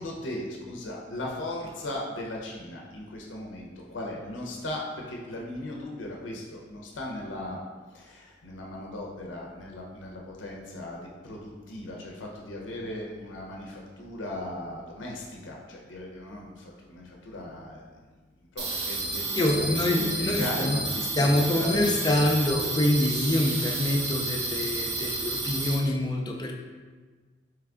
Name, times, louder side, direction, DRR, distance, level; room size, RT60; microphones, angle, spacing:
voice 1, 0.0-7.6 7.9-17.9 18.5-19.8 20.1-20.8 21.6-21.9, left 1 dB, 85° left, -1 dB, 0.6 m, -37 dB
sound 1, 18.6-25.7, right 3 dB, 60° right, 0.7 m, -31 dB
voice 2, 19.4-20.8 21.2-26.5, left 1 dB, 20° left, 1 dB, 0.4 m, -25 dB
3.4 x 3.2 x 3.6 m, 1.4 s
head